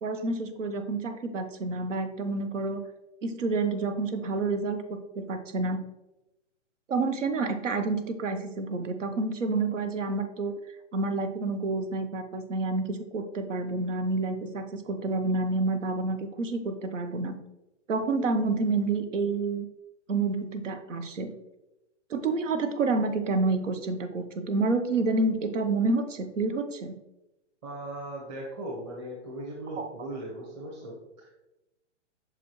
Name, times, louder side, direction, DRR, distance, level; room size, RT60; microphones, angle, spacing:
voice 1, 0.0-2.9 3.2-5.8 6.9-10.5 10.9-17.3 17.9-19.7 20.1-21.3 22.1-27.0 29.7-29.9, right 3 dB, 85° right, 8 dB, 1.0 m, -29 dB
voice 2, 27.6-31.3, right 1 dB, 25° right, -5 dB, 1.2 m, -38 dB
6.4 x 4.9 x 3.1 m, 0.93 s
hypercardioid pair, 160°, 36 cm